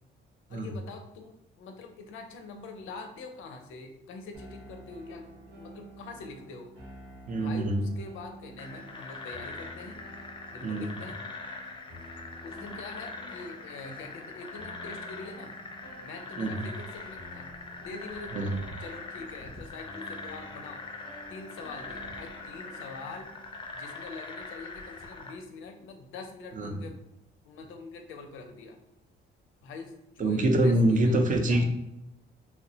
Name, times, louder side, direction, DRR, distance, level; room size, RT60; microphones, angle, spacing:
voice 1, 0.5-6.7 7.4-10.0 10.5-11.3 12.4-15.5 16.0-18.5 18.8-20.8 21.3-23.3 23.7-27.0 27.4-28.8 29.6-31.6, left 3 dB, 80° left, 5 dB, 0.5 m, -44 dB
sound 1, 4.3-23.6, right 1 dB, 90° right, 1.1 m, -50 dB
voice 2, 7.3-7.8 10.6-10.9 16.4-16.5 18.3-18.5 26.6-26.7 30.2-31.6, right 1 dB, 40° right, 4 dB, 0.5 m, -25 dB
sound 2, 8.6-25.4, left 3 dB, 25° left, 0.4 m, -42 dB
3.0 x 2.0 x 2.7 m, 0.85 s
cardioid pair, 90°, 20 cm